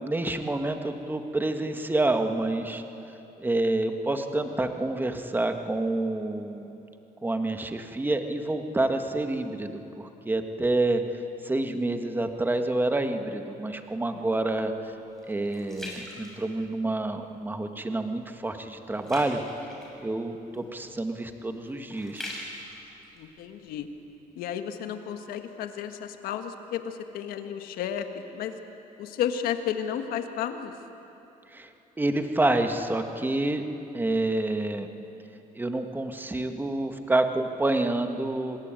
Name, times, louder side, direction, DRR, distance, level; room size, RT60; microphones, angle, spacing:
voice 1, 0.0-2.8 3.4-6.7 7.2-11.0 11.4-14.7 15.3-19.4 20.0-22.3 31.5-31.7 32.0-33.6 33.9-34.9 35.5-38.6, right 2 dB, 15° right, 6 dB, 1.7 m, -28 dB
sound 1, 14.0-17.1 17.6-17.9 18.2-24.2 24.7-24.8, left 1 dB, 5° left, 6.4 m, -44 dB
voice 2, 23.2-23.9 24.4-28.6 29.0-30.7, left 9 dB, 90° left, 7 dB, 1.7 m, -32 dB
26.0 x 20.0 x 9.1 m, 3.0 s
cardioid pair, 115°, 15 cm